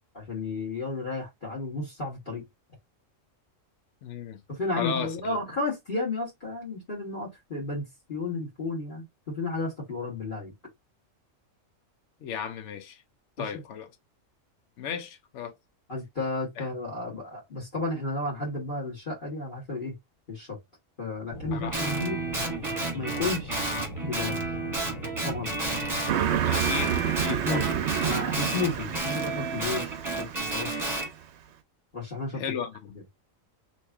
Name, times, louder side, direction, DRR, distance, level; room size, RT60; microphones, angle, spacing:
voice 1, 0.1-2.5 4.5-10.5 13.4-13.6 15.9-20.0 20.3-20.6 21.0-22.2 22.9-23.6 24.0-24.4 25.2-25.5 27.2-30.8 31.9-32.4, left 2 dB, 40° left, 1.5 m, -33 dB
voice 2, 4.0-4.4 4.8-5.4 12.2-13.0 13.4-13.9 14.8-15.5 16.6-16.7 21.5-21.8 26.4-27.7 32.3-32.7, left 7 dB, 65° left, 1.0 m, -35 dB
Aircraft / Engine, 21.3-26.3, equal, 85° left, 1.5 m, -40 dB
Guitar, 21.7-26.2 26.5-31.1, right 2 dB, 15° right, 1.1 m, -31 dB
Car passing by, 26.1-31.0, right 10 dB, 65° right, 0.8 m, -29 dB
3.1 x 2.7 x 3.4 m
omnidirectional pair, 1.4 m